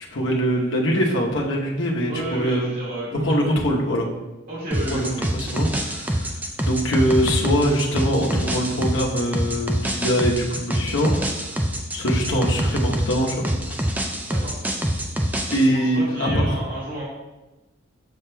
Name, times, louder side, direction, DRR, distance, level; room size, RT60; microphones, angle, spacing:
voice 1, 0.1-2.7 3.1-4.1 4.9-6.3 6.6-11.6 11.9-13.8 15.5-16.5, equal, 75° left, -2 dB, 1.0 m, -23 dB
voice 2, 2.1-3.6 4.5-5.3 14.3-14.6 15.5-17.0, right 1 dB, 45° right, -7 dB, 2.0 m, -32 dB
sound 1, 4.7-15.7, right 1 dB, 10° right, 0.4 m, -25 dB
7.2 x 5.9 x 2.3 m, 1.1 s
head